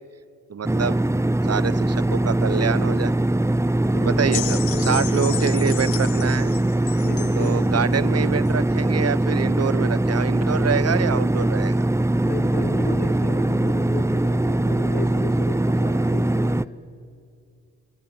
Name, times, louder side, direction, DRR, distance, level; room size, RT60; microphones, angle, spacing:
voice 1, 0.5-1.0 1.4-3.1 4.0-6.5 7.3-11.8 15.9-16.0, right 7 dB, 40° right, 19 dB, 1.1 m, -26 dB
sound 1, 0.6-16.6, right 1 dB, 5° right, 0.7 m, -21 dB
voice 2, 3.9-5.8 7.0-7.6 12.2-16.7, left 3 dB, 25° left, 4 dB, 3.8 m, -34 dB
sound 2, 4.3-7.6 8.5-8.6, left 12 dB, 60° left, 1.2 m, -33 dB
27.0 x 21.0 x 9.8 m, 2.4 s
hypercardioid pair, 50°, 40 cm